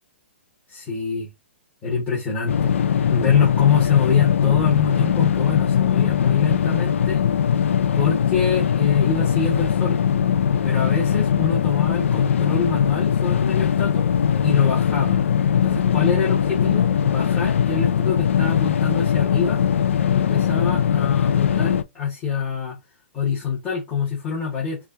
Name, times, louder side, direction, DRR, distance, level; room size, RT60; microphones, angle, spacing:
voice 1, 0.7-1.3 1.8-2.7 3.1-7.2 7.9-10.0 10.6-14.1 14.4-15.2 15.6-19.6 20.1-22.8 23.1-24.8, left 6 dB, 20° left, 1.2 m, -24 dB
sound 1, 2.5-21.8, left 8 dB, 80° left, 0.4 m, -20 dB
4.6 x 2.3 x 2.6 m
hypercardioid pair, 160°, 7 cm